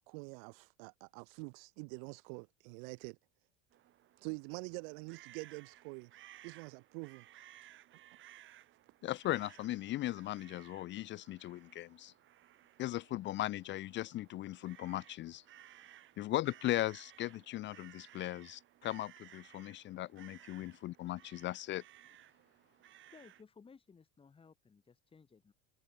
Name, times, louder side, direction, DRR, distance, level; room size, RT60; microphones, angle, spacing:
voice 1, 0.1-3.2 4.2-6.1 6.4-7.2, right 36 dB, 75° right, 2.1 m, -46 dB
sound 1, 3.7-23.4, right 13 dB, 40° right, 4.0 m, -60 dB
voice 2, 9.0-12.1 12.8-15.4 16.2-21.8, left 15 dB, 40° left, 0.7 m, -38 dB
voice 3, 23.1-25.5, left 5 dB, 20° left, 5.8 m, -60 dB
supercardioid pair, 140°, 29 cm